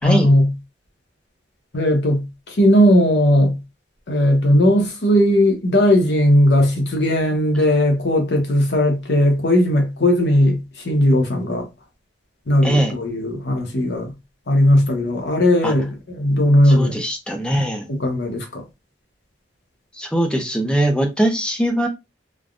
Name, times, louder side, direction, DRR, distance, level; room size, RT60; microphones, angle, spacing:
voice 1, 0.0-0.5 1.7-3.6 4.1-10.6 10.8-11.7 12.5-14.1 14.5-17.0 18.0-18.6, left 1 dB, 70° left, 0.9 m, -17 dB
voice 2, 12.6-13.0 15.6-15.7 16.6-17.9 19.9-21.9, right 1 dB, 5° left, 0.5 m, -21 dB
3.3 x 2.2 x 2.4 m
head